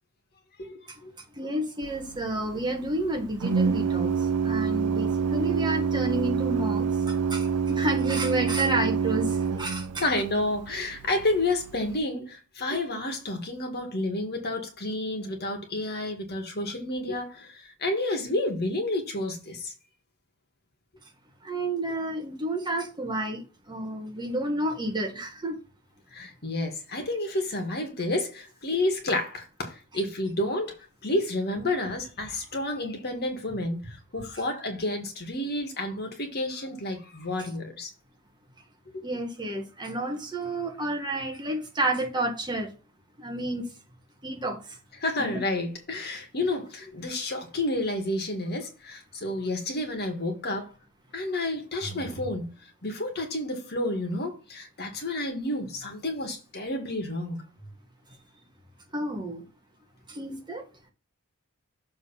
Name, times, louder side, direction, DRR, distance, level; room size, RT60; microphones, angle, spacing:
voice 1, 0.6-1.1 10.0-19.7 26.1-30.8 31.0-37.9 45.0-50.7 51.1-52.5 52.8-57.4, left 2 dB, 45° left, 1.9 m, -30 dB
voice 2, 1.4-10.1 21.4-25.6 39.0-42.7 43.2-43.7 44.2-44.8 45.2-45.3 58.9-59.4 60.1-60.6, right 1 dB, 20° right, 1.5 m, -30 dB
Organ, 1.8-12.0, right 6 dB, 75° right, 0.5 m, -28 dB
7.1 x 3.7 x 5.6 m
head